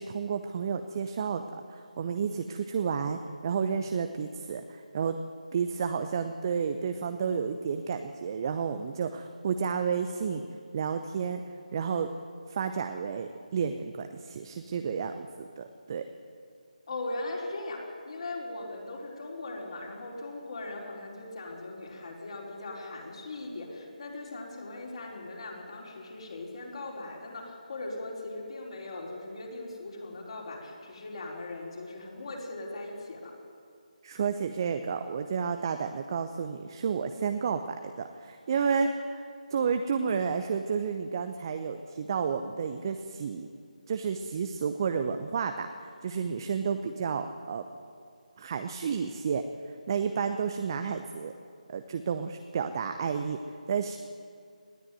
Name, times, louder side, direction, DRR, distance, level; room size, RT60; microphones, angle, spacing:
voice 1, 0.0-5.2 5.5-10.4 10.7-11.4 11.7-12.1 12.5-15.3 15.6-16.0 34.0-39.2 39.5-43.5 43.9-45.7 46.0-47.6 48.4-51.3 51.7-53.4 53.7-54.0, right 6 dB, 30° right, 8 dB, 0.8 m, -31 dB
voice 2, 16.9-33.3, left 2 dB, 45° left, -2 dB, 4.6 m, -39 dB
20.0 x 14.0 x 9.4 m, 2.3 s
figure-of-eight pair, 155°, 4 cm